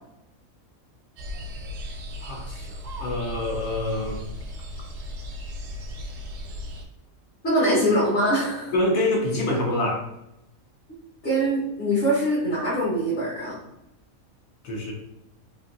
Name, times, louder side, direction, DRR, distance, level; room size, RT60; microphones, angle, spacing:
sound 1, 1.2-6.9, left 1 dB, 75° right, 0.9 m, -36 dB
voice 1, 2.2-4.2 8.7-10.1 14.6-14.9, left 1 dB, 75° left, 0 dB, 1.1 m, -26 dB
voice 2, 7.4-8.7 11.2-13.6, right 1 dB, 50° left, -8 dB, 1.0 m, -23 dB
3.0 x 2.5 x 2.4 m, 0.83 s
omnidirectional pair, 1.5 m